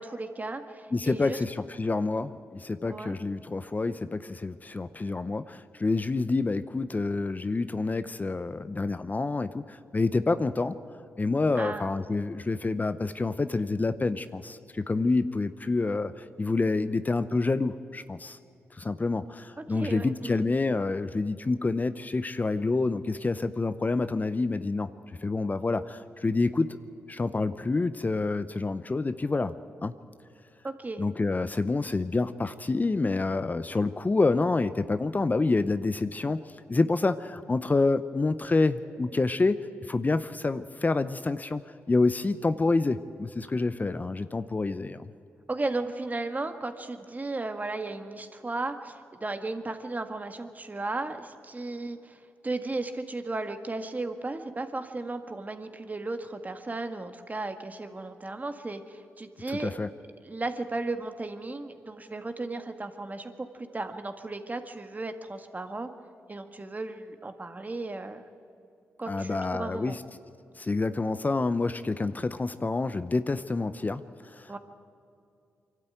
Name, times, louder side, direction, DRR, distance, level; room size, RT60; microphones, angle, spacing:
voice 1, 0.0-1.4 2.8-3.2 11.5-11.9 19.6-20.4 30.6-31.0 45.5-59.7 60.2-65.9 66.3-68.2 69.0-70.0 74.5-74.6, right 2 dB, 30° right, 7 dB, 1.8 m, -35 dB
voice 2, 0.9-10.8 11.2-18.4 18.7-24.9 25.2-26.8 27.1-29.5 29.8-29.9 31.0-36.4 36.7-39.6 39.9-41.6 41.9-45.1 59.5-59.9 69.1-70.0 70.6-74.6, left 3 dB, 30° left, 12 dB, 0.7 m, -28 dB
24.0 x 12.5 x 9.1 m, 2.5 s
supercardioid pair, 45°, 5 cm